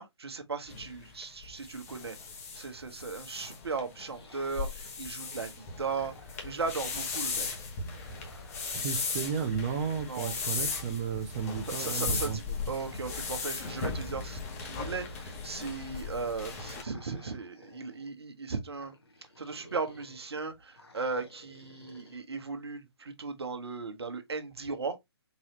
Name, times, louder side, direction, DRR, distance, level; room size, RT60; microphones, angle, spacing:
voice 1, 0.0-2.2 2.5-5.5 5.8-6.1 6.4-7.5 10.1-10.3 11.7-18.9 19.4-25.0, right 4 dB, 65° right, 0.9 m, -37 dB
sound 1, 0.7-16.8, left 4 dB, 35° left, 1.1 m, -37 dB
sound 2, 4.0-5.3 5.7-7.2 7.7-9.4 10.0-11.7 12.6-13.9 14.7-16.0 16.8-18.1 18.7-20.3 20.7-22.2, left 1 dB, 65° left, 1.4 m, -55 dB
voice 2, 8.7-12.5, right 7 dB, 25° right, 0.5 m, -33 dB
3.9 x 2.8 x 2.9 m
figure-of-eight pair, 135°, 14 cm